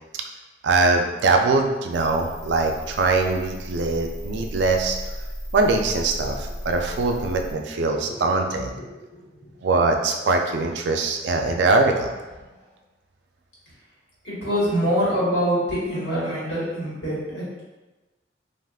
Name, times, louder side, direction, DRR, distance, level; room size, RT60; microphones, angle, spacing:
voice 1, 0.6-5.0 5.5-8.7 9.6-12.1, right 3 dB, 70° right, 3 dB, 0.4 m, -22 dB
sound 1, 1.9-7.5, equal, 20° right, 0.7 m, -35 dB
voice 2, 8.7-9.5 12.4-12.5 14.2-17.6, equal, 80° left, -8 dB, 1.4 m, -25 dB
3.5 x 2.4 x 2.3 m, 1.1 s
head